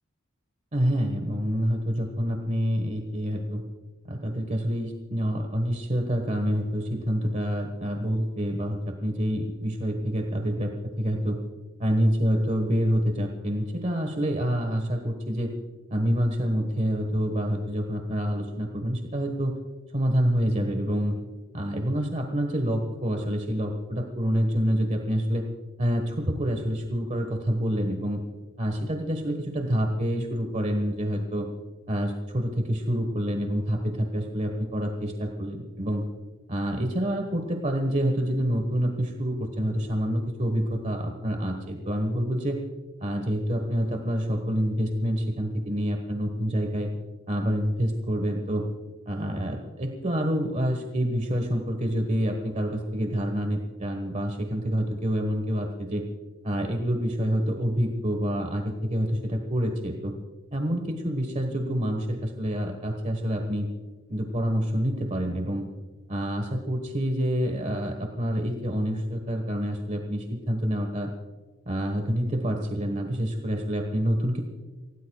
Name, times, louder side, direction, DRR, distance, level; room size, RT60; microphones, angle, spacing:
voice 1, 0.7-3.6 4.0-11.4 11.8-15.6 15.9-19.6 19.9-21.2 21.5-25.5 25.8-28.2 28.6-31.5 31.9-36.0 36.5-42.6 43.0-46.9 47.3-48.6 49.1-56.0 56.4-60.1 60.5-63.7 64.1-65.7 66.1-71.1 71.6-74.4, equal, 35° right, 4 dB, 1.3 m, -27 dB
29.0 x 17.0 x 2.3 m, 1.3 s
head